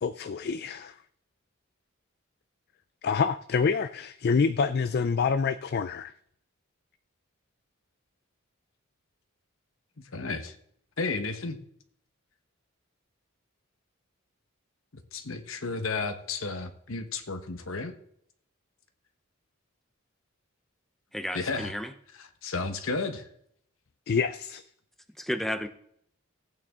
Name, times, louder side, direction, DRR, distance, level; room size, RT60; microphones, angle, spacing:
voice 1, 0.0-1.0 3.0-6.1 24.1-24.6, left 5 dB, 50° left, 0.4 m, -27 dB
voice 2, 10.0-10.6 11.0-11.6 15.1-17.9 21.3-21.7 22.2-23.3, left 3 dB, 70° left, 1.2 m, -33 dB
voice 3, 21.1-21.9 25.2-25.7, equal, ahead, 0.6 m, -32 dB
16.0 x 8.8 x 3.7 m
head